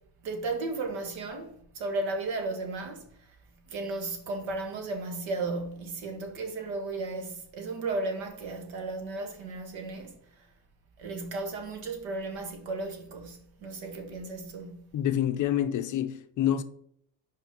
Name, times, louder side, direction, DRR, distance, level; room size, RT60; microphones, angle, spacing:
voice 1, 0.2-3.0 3.7-10.5 11.0-14.9, right 3 dB, 90° right, 1.8 m, -35 dB
voice 2, 14.9-16.6, left 11 dB, 45° left, 0.5 m, -27 dB
5.6 x 5.0 x 5.2 m
cardioid pair, 165°, 45 cm